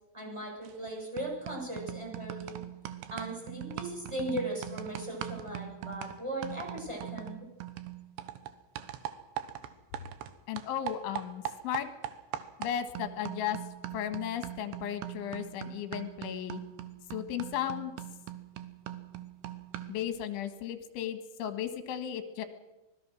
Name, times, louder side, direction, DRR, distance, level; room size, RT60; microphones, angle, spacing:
voice 1, 0.1-2.6 3.1-7.5, right 1 dB, 5° right, -1 dB, 6.3 m, -38 dB
sound 1, 0.7-0.9 1.2-10.3 10.6-20.1, right 13 dB, 70° right, 3.1 m, -41 dB
voice 2, 10.5-11.9 12.6-13.6 13.9-16.6 17.1-17.9 19.9-22.5, left 10 dB, 80° left, 9 dB, 3.9 m, -35 dB
24.5 x 20.0 x 6.3 m, 1.0 s
omnidirectional pair, 5.5 m